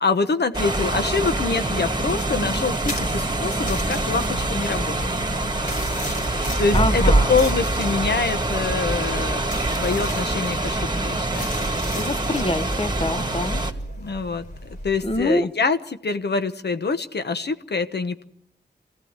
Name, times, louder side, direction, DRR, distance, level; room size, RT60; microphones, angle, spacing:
voice 1, 0.0-5.1 6.6-7.0 7.3-11.5 14.0-14.4 14.8-18.2, left 4 dB, 75° left, 9 dB, 1.1 m, -25 dB
sound 1, 0.5-13.7, right 2 dB, 25° right, 2.1 m, -24 dB
sound 2, 2.8-15.3, equal, 50° left, 4.7 m, -35 dB
voice 2, 6.7-7.4 11.9-13.6 15.0-15.5, left 1 dB, 35° left, 11 dB, 1.3 m, -25 dB
25.0 x 16.0 x 8.1 m, 0.71 s
wide cardioid pair, 60°, 17 cm